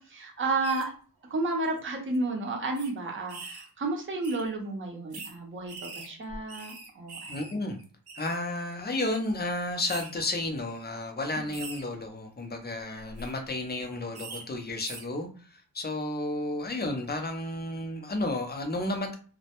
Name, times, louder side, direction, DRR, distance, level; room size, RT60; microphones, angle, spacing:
voice 1, 0.1-0.9 1.3-7.4, right 2 dB, 30° right, 0 dB, 0.6 m, -32 dB
sound 1, 0.6-0.8 1.6-1.8 2.1-2.2 2.8-2.9 3.3-3.7 4.2-4.4 5.1-5.3 5.7-7.5 7.8-8.4 9.0-9.2 9.9-10.1 10.7-10.8 11.5-11.8 13.0-13.3 14.2-14.4 14.8-15.1, right 3 dB, 70° right, 0.6 m, -42 dB
voice 2, 7.3-7.8 8.2-19.2, left 2 dB, 25° left, 4 dB, 0.5 m, -32 dB
2.1 x 2.0 x 2.8 m, 0.39 s
wide cardioid pair, 110°, 40 cm